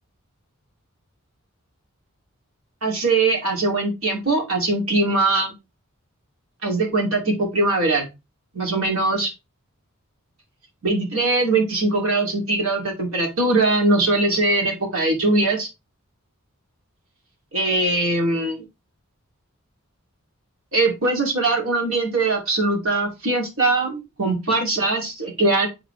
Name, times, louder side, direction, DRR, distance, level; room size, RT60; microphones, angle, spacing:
voice 1, 2.8-5.5 6.6-8.1 8.5-9.3 10.8-15.7 17.5-18.6 20.7-25.7, right 2 dB, 70° right, 0 dB, 2.5 m, -21 dB
8.7 x 3.8 x 3.2 m, 0.24 s
head